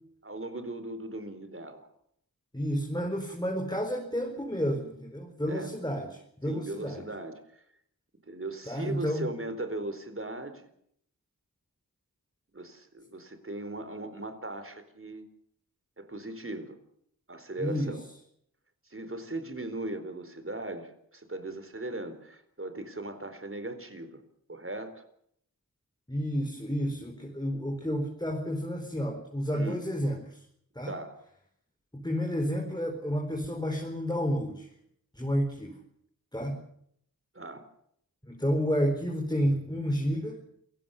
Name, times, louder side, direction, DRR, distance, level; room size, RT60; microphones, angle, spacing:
voice 1, 0.2-1.9 5.5-5.7 6.4-7.4 8.3-10.7 12.5-15.2 16.0-16.8 17.3-18.0 18.9-24.2 24.5-25.0 29.5-29.8 30.9-31.2 37.3-37.6, right 2 dB, 35° right, 10 dB, 4.3 m, -38 dB
voice 2, 2.5-7.0 8.7-9.3 17.6-18.0 26.1-30.4 30.7-30.9 31.9-34.7 35.1-35.8 36.3-36.6 38.3-40.4, equal, 10° left, 2 dB, 4.4 m, -30 dB
28.5 x 16.5 x 7.2 m, 0.69 s
wide cardioid pair, 60°, 35 cm